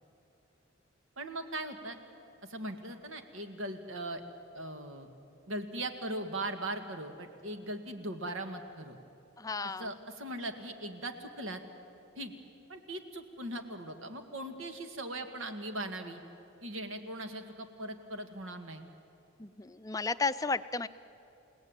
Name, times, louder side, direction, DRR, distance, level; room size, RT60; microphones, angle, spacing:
voice 1, 1.2-2.0 2.4-4.2 4.5-5.1 5.5-9.0 9.6-11.6 12.2-12.3 12.7-16.2 16.6-18.8, right 1 dB, 85° right, 7 dB, 2.0 m, -39 dB
voice 2, 9.4-9.9 19.4-20.9, left 4 dB, 15° left, 13 dB, 0.5 m, -33 dB
29.5 x 17.5 x 9.0 m, 2.8 s
head